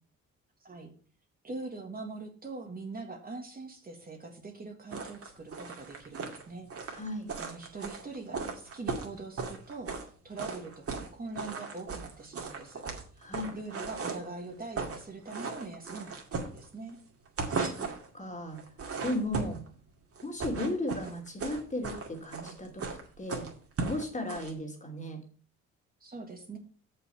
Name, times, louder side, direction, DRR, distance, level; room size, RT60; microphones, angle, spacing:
voice 1, 0.6-0.9 1.4-6.7 7.4-12.8 13.5-17.0 26.0-26.6, right 3 dB, 30° right, 2 dB, 1.7 m, -43 dB
sound 1, 4.9-10.1 10.4-11.1 11.4-14.3 14.6-15.0 15.3-16.9 17.3-18.1 18.5-19.7 20.1-24.5, right 4 dB, 50° right, 2.4 m, -37 dB
voice 2, 6.9-7.3 13.2-13.6 17.5-17.9 18.1-18.6 19.0-19.6 20.2-23.5 23.8-25.2, left 1 dB, 25° left, 3 dB, 2.9 m, -35 dB
6.9 x 5.6 x 6.8 m, 0.41 s
cardioid pair, 90°, 30 cm